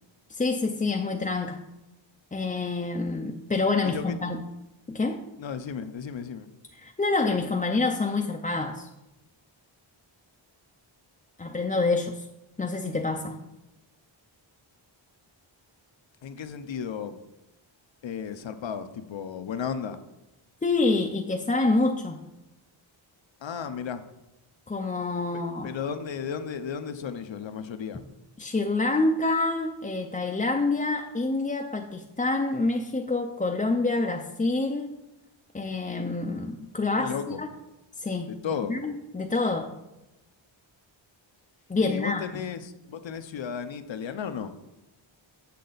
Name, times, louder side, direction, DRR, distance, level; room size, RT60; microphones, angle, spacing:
voice 1, 0.3-1.6 2.3-4.4 4.9-5.2 6.7-8.9 11.4-12.3 12.6-13.4 20.6-22.2 24.7-25.7 28.4-35.0 35.5-37.5 38.0-38.3 38.7-39.7 41.7-42.2, left 3 dB, 15° left, 3 dB, 0.5 m, -27 dB
voice 2, 3.8-4.2 5.4-6.5 16.2-17.2 18.0-20.0 23.4-24.0 25.6-28.0 37.0-37.4 38.3-38.7 41.8-44.5, left 7 dB, 65° left, 10 dB, 0.8 m, -34 dB
8.4 x 6.6 x 4.0 m, 0.96 s
wide cardioid pair, 115°, 48 cm